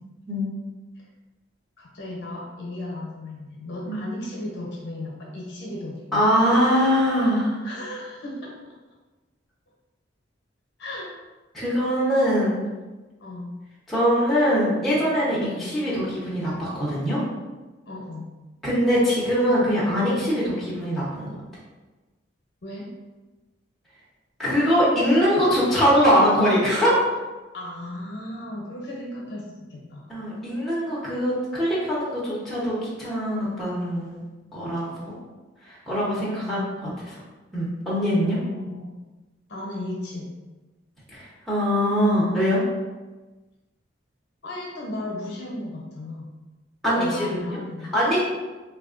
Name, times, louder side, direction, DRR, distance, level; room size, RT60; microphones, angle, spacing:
voice 1, 1.8-6.3 7.6-8.7 10.8-11.2 13.2-13.5 15.4-15.7 17.9-18.3 22.6-22.9 27.5-30.0 36.1-37.0 38.2-38.9 39.5-40.3 44.4-46.3 46.9-47.9, left 1 dB, 60° left, -3 dB, 0.7 m, -35 dB
voice 2, 6.1-7.6 11.5-12.6 13.9-17.2 18.6-21.3 24.4-26.9 30.1-34.2 34.5-35.1 35.6-36.6 37.5-38.4 41.1-42.6 46.8-47.4 47.9-48.2, equal, ahead, -9 dB, 0.7 m, -22 dB
3.4 x 2.3 x 2.4 m, 1.2 s
head